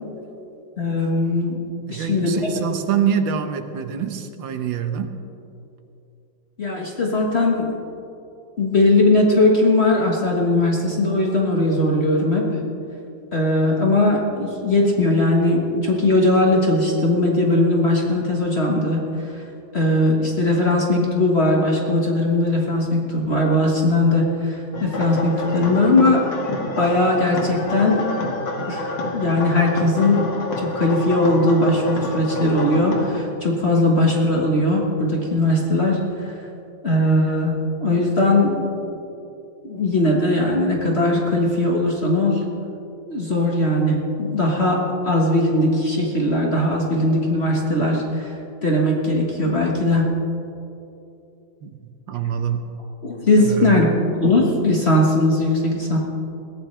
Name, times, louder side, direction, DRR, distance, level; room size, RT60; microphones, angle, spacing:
voice 1, 0.8-1.6 1.9-2.4 6.6-7.8 8.6-12.5 13.3-19.3 19.7-26.2 26.5-28.1 28.7-28.9 29.1-36.4 36.8-39.0 39.6-42.5 43.1-48.3 48.6-50.1 53.0-53.9 54.1-56.0, left 2 dB, 35° left, -2 dB, 1.7 m, -19 dB
voice 2, 1.9-5.1 51.6-51.7 52.1-52.7 53.4-53.8, right 8 dB, 80° right, 7 dB, 1.7 m, -25 dB
sound 1, 24.7-33.1, left 1 dB, 70° left, 2.6 m, -28 dB
22.0 x 16.5 x 3.3 m, 2.8 s
omnidirectional pair, 2.0 m